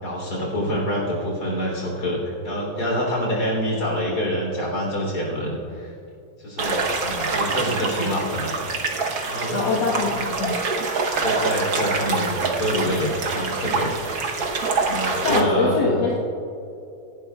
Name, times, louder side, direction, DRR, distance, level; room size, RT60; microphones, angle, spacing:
voice 1, 0.0-5.9 6.4-8.9 9.3-10.1 11.2-14.2 14.9-15.9, equal, 60° left, -2 dB, 3.9 m, -26 dB
sound 1, 6.6-15.4, right 4 dB, 60° right, 1.5 m, -25 dB
voice 2, 9.5-10.1 10.4-10.6 15.2-16.1, left 4 dB, 80° left, -5 dB, 2.0 m, -22 dB
26.5 x 11.0 x 2.4 m, 2.7 s
omnidirectional pair, 2.0 m